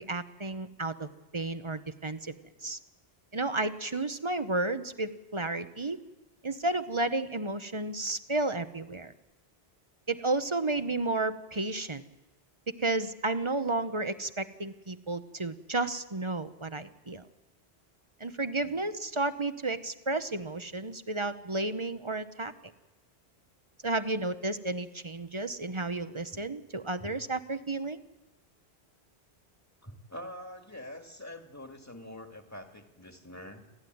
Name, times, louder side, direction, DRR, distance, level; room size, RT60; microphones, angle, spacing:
voice 1, 0.0-2.3 2.6-2.8 3.3-6.0 6.4-9.1 10.1-12.0 12.8-17.3 18.2-22.5 23.8-28.0, right 2 dB, 30° right, 11 dB, 0.9 m, -32 dB
voice 2, 29.8-33.7, left 1 dB, 15° left, 4 dB, 2.0 m, -45 dB
29.0 x 14.0 x 9.4 m, 1.1 s
omnidirectional pair, 1.1 m